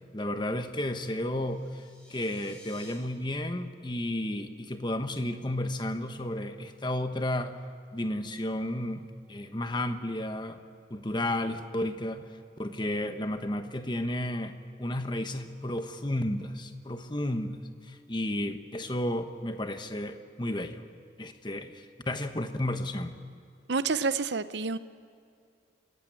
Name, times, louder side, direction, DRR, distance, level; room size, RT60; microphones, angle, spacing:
voice 1, 0.0-1.8 2.1-7.5 7.9-10.6 10.9-12.2 12.6-20.8 21.2-23.1, left 1 dB, 25° left, 8 dB, 1.1 m, -32 dB
sound 1, 1.4-2.9, left 1 dB, 5° left, 4.7 m, -54 dB
voice 2, 23.7-24.8, right 4 dB, 65° right, 13 dB, 0.8 m, -28 dB
26.0 x 15.0 x 9.1 m, 2.4 s
head